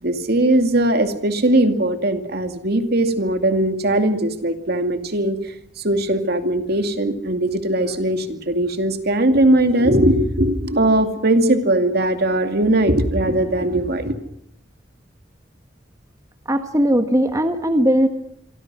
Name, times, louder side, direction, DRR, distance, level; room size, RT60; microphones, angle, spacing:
voice 1, 0.0-5.5 5.8-14.2, right 1 dB, 60° right, 7 dB, 2.6 m, -19 dB
voice 2, 16.5-18.1, equal, 20° right, 7 dB, 1.4 m, -18 dB
26.5 x 24.5 x 6.3 m, 0.73 s
head